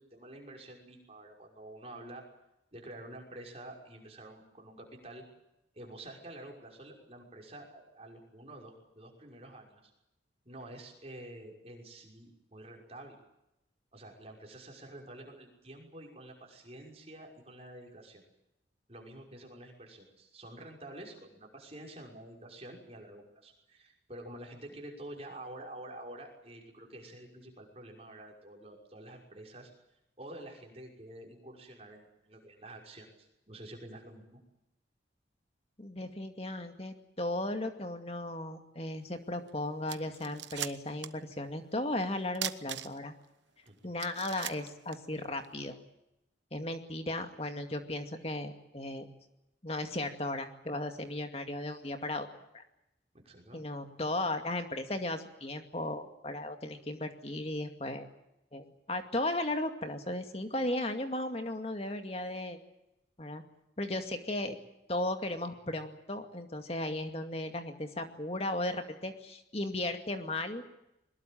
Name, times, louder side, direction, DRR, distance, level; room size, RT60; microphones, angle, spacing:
voice 1, 0.0-2.2 2.7-5.2 5.7-9.9 10.4-13.1 13.9-18.2 18.9-29.7 30.2-34.4 43.7-43.9 53.2-53.6, right 1 dB, 35° right, 0 dB, 5.8 m, -48 dB
voice 2, 35.8-43.1 43.8-45.7 46.5-49.1 49.6-52.3 52.5-52.6 53.5-58.1 58.5-62.6 63.2-63.4 63.8-64.6 64.9-70.6, left 1 dB, 35° left, 6 dB, 2.3 m, -36 dB
sound 1, 39.5-39.6 39.9-41.2 41.5-41.6 42.3-43.2 43.6-43.7 44.0-45.5, right 11 dB, 75° right, 1.1 m, -39 dB
22.5 x 20.5 x 8.9 m, 0.87 s
head